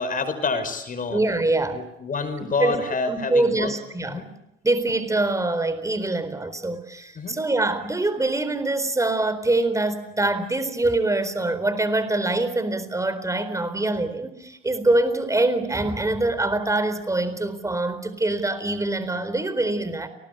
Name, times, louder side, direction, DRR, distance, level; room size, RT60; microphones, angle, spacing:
voice 1, 0.0-1.2 1.7-3.7 4.1-4.3 7.1-7.4, left 4 dB, 40° left, 9 dB, 5.7 m, -28 dB
voice 2, 1.1-1.8 2.6-2.8 3.1-4.2 4.6-20.1, right 2 dB, 15° right, 11 dB, 4.1 m, -24 dB
30.0 x 20.5 x 8.5 m, 0.87 s
cardioid pair, 100°, 21 cm